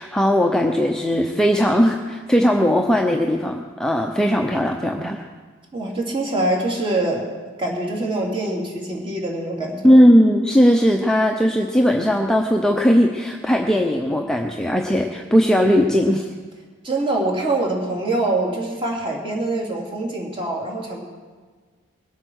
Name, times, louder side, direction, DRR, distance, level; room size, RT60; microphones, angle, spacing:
voice 1, 0.0-5.2 9.8-16.3, equal, 5° left, 1 dB, 0.7 m, -18 dB
voice 2, 5.7-7.3 7.6-9.9 16.8-21.0, right 2 dB, 25° right, -1 dB, 3.1 m, -24 dB
21.0 x 8.4 x 6.4 m, 1.5 s
head